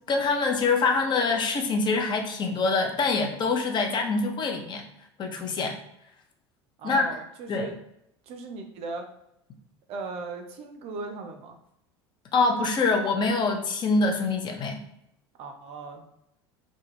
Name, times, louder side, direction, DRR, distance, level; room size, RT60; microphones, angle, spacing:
voice 1, 0.0-4.8 5.2-5.8 6.8-7.1 7.5-7.7 12.3-14.8, left 3 dB, 35° left, 3 dB, 0.5 m, -25 dB
voice 2, 6.8-7.8 8.3-9.1 9.9-11.6 15.4-16.0, right 4 dB, 45° right, 4 dB, 0.5 m, -37 dB
2.3 x 2.1 x 3.1 m, 0.79 s
figure-of-eight pair, 70°, 14 cm